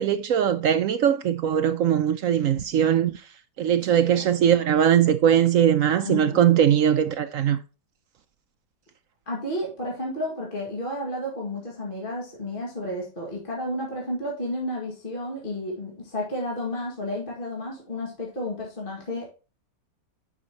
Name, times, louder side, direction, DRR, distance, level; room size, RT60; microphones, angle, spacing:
voice 1, 0.0-3.2 3.6-7.6, right 9 dB, 70° right, 0.8 m, -20 dB
voice 2, 3.9-4.2 6.0-6.5 9.3-19.3, left 1 dB, 30° left, 2.0 m, -32 dB
9.6 x 5.6 x 2.9 m
omnidirectional pair, 1.8 m